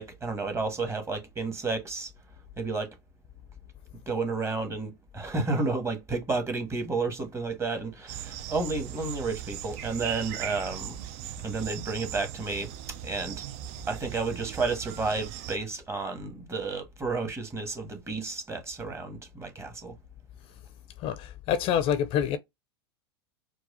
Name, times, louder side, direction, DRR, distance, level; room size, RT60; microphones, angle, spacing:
voice 1, 0.0-2.1 2.6-2.9 4.1-11.0 11.4-12.7 13.0-13.4 13.9-20.0, right 3 dB, 20° right, 1.4 m, -31 dB
sound 1, 8.1-15.6, right 11 dB, 50° right, 0.5 m, -39 dB
voice 2, 21.0-22.4, left 9 dB, 45° left, 0.5 m, -26 dB
4.6 x 2.3 x 2.5 m
hypercardioid pair, 90°, 13 cm